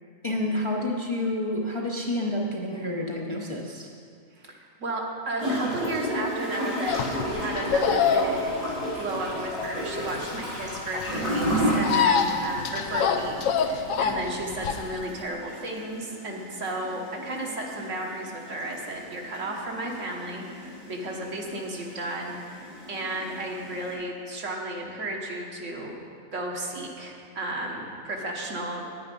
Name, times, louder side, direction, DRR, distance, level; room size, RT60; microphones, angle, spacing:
voice 1, 0.2-3.9, left 1 dB, 25° left, -2 dB, 0.7 m, -29 dB
voice 2, 4.4-8.6 9.0-26.0 26.3-28.8, right 1 dB, 65° right, 0 dB, 1.6 m, -34 dB
Gurgling / Toilet flush, 5.4-23.9, equal, 85° right, 4.0 m, -33 dB
sound 1, 6.9-15.0, left 6 dB, 75° left, 1.0 m, -26 dB
9.6 x 9.4 x 5.3 m, 2.2 s
omnidirectional pair, 1.4 m